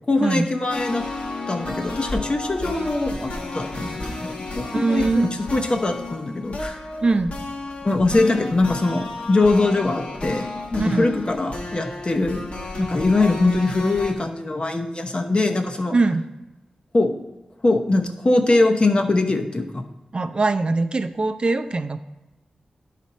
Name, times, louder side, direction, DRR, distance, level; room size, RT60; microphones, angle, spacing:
voice 1, 0.1-1.1 1.5-6.8 7.8-12.5 12.8-16.0 16.9-17.1 17.6-19.8, left 2 dB, 45° left, 4 dB, 0.9 m, -22 dB
sound 1, 0.7-14.1, left 2 dB, 60° left, 1.3 m, -32 dB
voice 2, 4.7-5.3 7.0-7.4 10.8-11.1 15.9-16.2 20.1-22.0, right 3 dB, 45° right, 9 dB, 0.5 m, -22 dB
10.5 x 4.2 x 4.2 m, 1.0 s
cardioid pair, 45°, 2 cm